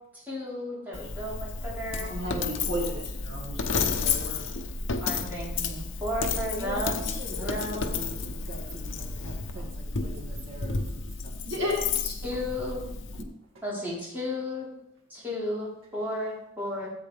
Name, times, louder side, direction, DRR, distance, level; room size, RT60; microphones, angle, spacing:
voice 1, 0.1-2.1 5.0-7.9 9.6-9.7 12.0-12.8 13.6-14.7 15.1-16.9, left 1 dB, 10° right, -7 dB, 4.1 m, -34 dB
Coin (dropping), 0.9-13.2, left 4 dB, 65° left, 0.9 m, -32 dB
voice 2, 2.0-4.4 11.5-11.8, left 1 dB, 60° right, -2 dB, 2.3 m, -33 dB
voice 3, 6.6-11.6 13.2-13.3, right 1 dB, 80° right, -2 dB, 2.5 m, -42 dB
14.0 x 8.4 x 3.5 m, 0.79 s
head